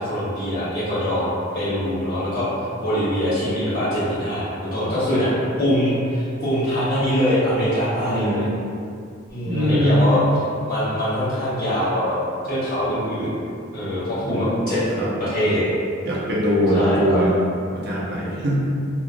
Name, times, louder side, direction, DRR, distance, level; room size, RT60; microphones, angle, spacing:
voice 1, 0.0-2.5 2.8-5.3 5.6-8.5 9.3-10.2 10.7-12.2 12.4-13.3 13.7-14.8 15.2-15.6 16.7-17.2, equal, 45° left, -12 dB, 1.3 m, -23 dB
voice 2, 8.0-8.6 9.5-10.2 14.2-15.1 16.0-17.3 17.7-18.7, equal, 50° right, -6 dB, 0.5 m, -22 dB
2.9 x 2.1 x 2.5 m, 2.4 s
head